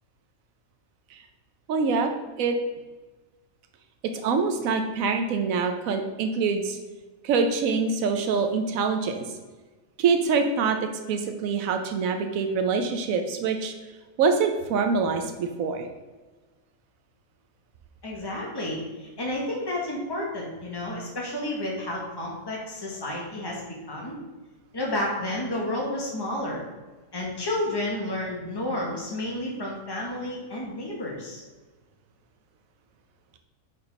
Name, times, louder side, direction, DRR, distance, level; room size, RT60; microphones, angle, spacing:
voice 1, 1.7-2.1 2.4-2.6 4.2-6.8 7.2-9.2 10.0-13.7 14.2-15.9, right 5 dB, 90° right, 5 dB, 1.1 m, -25 dB
voice 2, 18.0-23.6 23.9-24.1 24.7-26.6 27.1-31.4, left 1 dB, 20° left, -2 dB, 1.3 m, -31 dB
5.2 x 4.5 x 5.2 m, 1.3 s
omnidirectional pair, 1.4 m